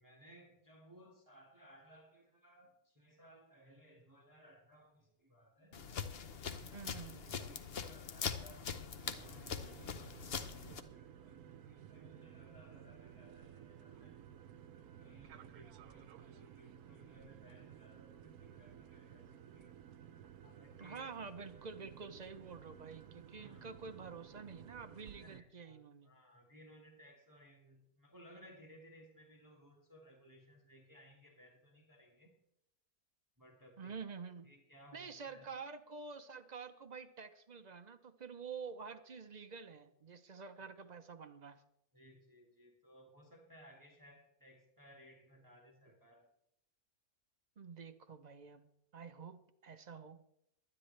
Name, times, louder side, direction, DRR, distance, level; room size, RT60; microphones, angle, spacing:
voice 1, 0.0-5.8 6.6-14.2 14.7-19.8 20.4-21.1 23.4-23.7 25.2-32.4 33.4-34.0 34.4-35.5 41.9-46.3, equal, 15° right, 0 dB, 1.7 m, -61 dB
sound 1, 5.7-10.8, left 6 dB, 50° left, 0.9 m, -42 dB
voice 2, 6.6-7.4 20.8-26.1 33.8-34.5 34.9-41.6 47.6-50.2, right 5 dB, 45° right, 8 dB, 0.6 m, -49 dB
sound 2, 9.0-25.4, right 9 dB, 75° right, 1.1 m, -56 dB
22.5 x 9.8 x 3.2 m, 0.79 s
omnidirectional pair, 1.6 m